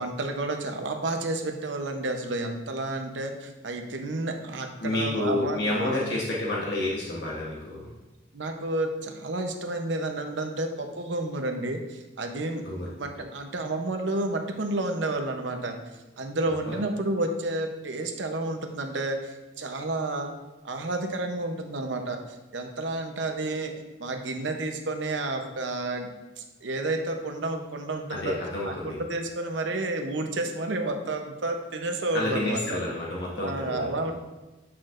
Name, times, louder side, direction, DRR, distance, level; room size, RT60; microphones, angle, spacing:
voice 1, 0.0-6.1 8.3-12.6 13.0-15.8 16.2-20.3 20.6-23.7 24.0-26.1 26.4-28.4 28.6-32.8 33.4-34.1, right 2 dB, 85° right, 4 dB, 0.8 m, -31 dB
voice 2, 4.8-7.9 12.6-12.9 16.7-16.8 28.1-29.0 32.1-34.1, left 2 dB, 70° left, -4 dB, 1.1 m, -29 dB
8.5 x 6.0 x 2.5 m, 1.1 s
head